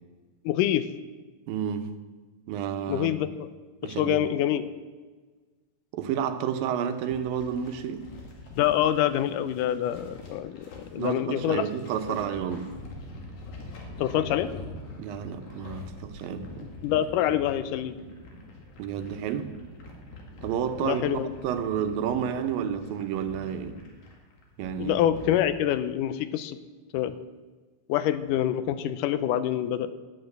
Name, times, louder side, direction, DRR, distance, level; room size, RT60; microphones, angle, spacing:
voice 1, 0.5-0.9 2.9-3.5 3.8-4.7 8.5-11.7 12.1-12.2 14.0-14.5 16.6-18.0 20.8-21.3 24.8-26.6 26.9-27.2 27.9-29.9, left 11 dB, 80° left, 12 dB, 2.1 m, -26 dB
voice 2, 1.5-1.9 2.5-3.3 3.8-4.2 5.9-8.1 10.9-12.7 15.0-16.7 18.8-19.5 20.4-23.8 24.6-25.0, right 8 dB, 90° right, 8 dB, 2.7 m, -30 dB
sound 1, 6.9-25.4, left 2 dB, 60° left, 3.2 m, -45 dB
11.5 x 8.9 x 8.1 m, 1.4 s
omnidirectional pair, 4.0 m